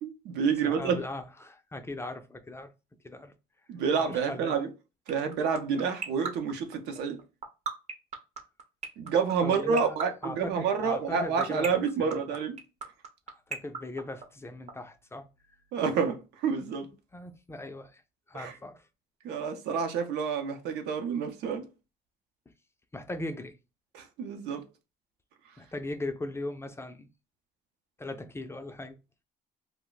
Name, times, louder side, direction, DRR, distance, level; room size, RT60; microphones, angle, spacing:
voice 1, 0.0-1.0 3.7-4.7 5.1-7.2 9.0-12.6 15.7-16.9 18.3-18.5 19.2-21.7 23.9-24.6, right 6 dB, 80° right, 0.6 m, -29 dB
voice 2, 0.6-2.7 3.0-3.3 4.0-4.5 9.4-11.7 12.0-12.2 13.3-15.6 17.1-18.0 18.3-18.9 22.9-23.6 25.6-27.1 28.0-29.0, left 2 dB, 15° left, 0.3 m, -39 dB
sound 1, 5.1-14.7, right 5 dB, 40° right, 0.6 m, -33 dB
2.3 x 2.1 x 3.8 m
cardioid pair, 110°, 17 cm